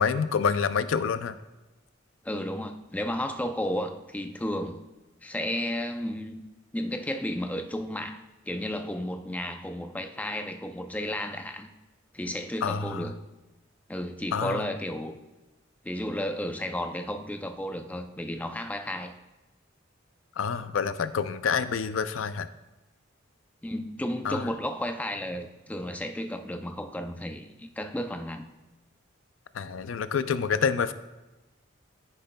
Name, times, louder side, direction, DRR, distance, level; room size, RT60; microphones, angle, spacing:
voice 1, 0.0-1.4 12.6-13.1 14.3-14.7 20.4-22.5 24.2-24.5 29.5-30.9, left 6 dB, 85° left, 13 dB, 0.4 m, -27 dB
voice 2, 2.2-4.8 5.2-6.4 6.7-8.2 8.5-11.7 12.1-13.2 13.9-15.2 15.8-19.1 23.6-28.5, left 1 dB, 10° left, 6 dB, 0.4 m, -33 dB
10.0 x 9.8 x 2.2 m, 1.1 s
head